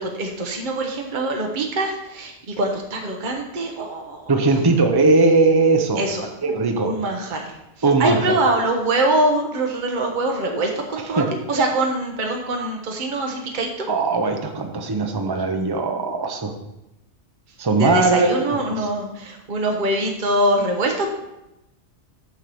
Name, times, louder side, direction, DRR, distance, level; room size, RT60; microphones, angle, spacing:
voice 1, 0.0-4.2 6.0-6.2 6.8-7.5 8.0-13.9 17.8-21.1, right 1 dB, 45° right, 1 dB, 1.2 m, -23 dB
voice 2, 4.3-6.0 6.4-6.9 7.8-8.3 11.2-11.3 13.9-16.5 17.6-18.4, right 3 dB, 20° right, 4 dB, 0.8 m, -19 dB
9.3 x 4.6 x 6.9 m, 0.90 s
omnidirectional pair, 1.2 m